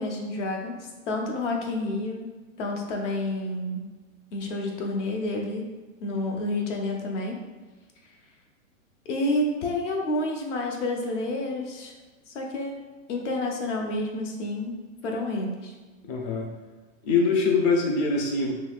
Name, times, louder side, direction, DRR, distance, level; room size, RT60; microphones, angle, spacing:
voice 1, 0.0-2.3 2.6-3.8 4.3-5.7 6.0-7.4 9.1-11.9 12.3-12.8 13.1-14.8 15.0-15.7, left 2 dB, 60° left, 1 dB, 0.8 m, -29 dB
voice 2, 16.1-16.4 17.0-18.5, left 4 dB, 30° left, 1 dB, 0.5 m, -23 dB
4.0 x 3.1 x 2.4 m, 1.3 s
hypercardioid pair, 135°, 41 cm